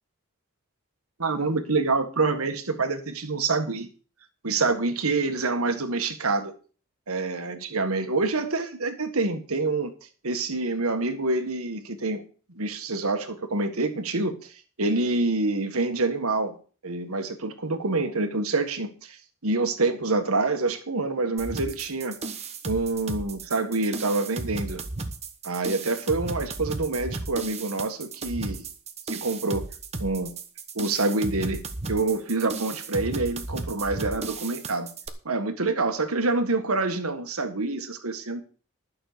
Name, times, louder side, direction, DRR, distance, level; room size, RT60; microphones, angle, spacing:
voice 1, 1.2-3.9 4.4-6.5 7.1-9.9 10.2-12.2 12.5-16.5 16.8-22.1 22.6-24.8 25.4-28.7 29.1-29.6 30.0-30.3 30.7-31.6 31.9-34.9 35.2-38.4, right 3 dB, 90° right, 8 dB, 1.7 m, -26 dB
sound 1, 21.4-35.1, right 3 dB, 30° right, 1.2 m, -35 dB
12.0 x 6.7 x 6.7 m, 0.38 s
head